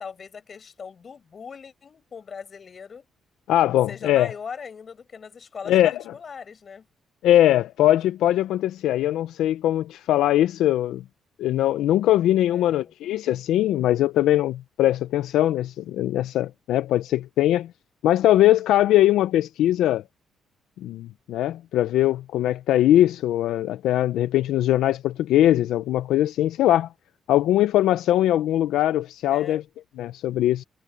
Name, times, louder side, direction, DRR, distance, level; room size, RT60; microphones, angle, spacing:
voice 1, 0.0-3.1 3.9-6.9 12.5-12.9 29.3-29.6, left 6 dB, 45° left, 6.9 m, -40 dB
voice 2, 3.5-4.3 5.7-6.0 7.2-11.0 11.4-17.7 18.0-20.0 20.8-26.9 27.3-29.6 30.0-30.6, left 13 dB, 85° left, 0.5 m, -21 dB
cardioid pair, 90°, 0 cm